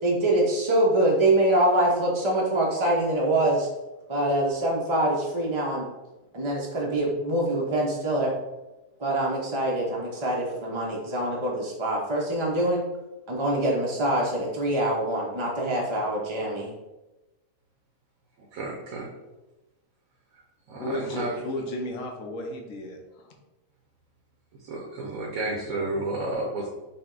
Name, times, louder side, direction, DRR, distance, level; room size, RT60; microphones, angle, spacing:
voice 1, 0.0-3.7 4.1-5.9 6.3-8.3 9.0-12.8 13.3-16.7, right 1 dB, 40° right, -3 dB, 0.4 m, -24 dB
voice 2, 18.5-19.1 20.7-20.8 21.1-21.3 24.6-26.7, right 2 dB, 85° right, -2 dB, 1.2 m, -31 dB
voice 3, 20.7-23.3, left 1 dB, 75° left, 2 dB, 1.1 m, -34 dB
5.6 x 2.1 x 3.7 m, 1.1 s
omnidirectional pair, 1.4 m